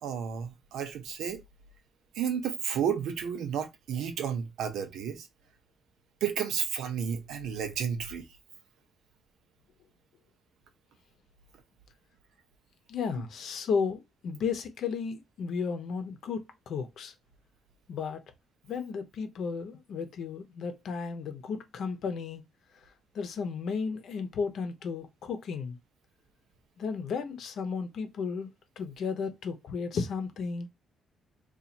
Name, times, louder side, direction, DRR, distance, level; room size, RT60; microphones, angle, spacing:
voice 1, 0.0-1.4 2.1-5.3 6.2-8.3, right 8 dB, 80° right, 0.6 m, -32 dB
voice 2, 12.9-17.1 17.9-18.2 18.6-22.4 23.1-25.8 26.8-28.5 28.8-30.7, left 5 dB, 65° left, 0.7 m, -34 dB
2.9 x 2.4 x 4.1 m
cardioid pair, 90°, 0 cm